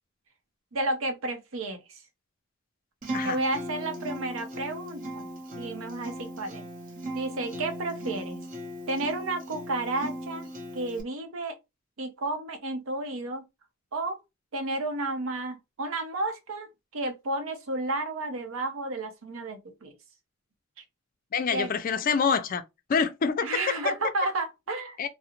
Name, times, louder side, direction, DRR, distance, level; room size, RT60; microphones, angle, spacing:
voice 1, 0.7-2.0 3.2-5.3 5.6-6.6 7.1-8.4 8.9-10.5 10.7-11.5 12.0-13.4 13.9-14.2 14.5-19.9 20.8-20.9 21.5-21.7 23.4-25.1, right 2 dB, 80° right, 0.6 m, -32 dB
Acoustic guitar, 3.0-11.0, equal, 40° right, 0.6 m, -37 dB
voice 2, 21.3-22.6 22.9-23.9 25.0-25.1, left 6 dB, 45° left, 0.3 m, -26 dB
2.4 x 2.0 x 2.8 m
head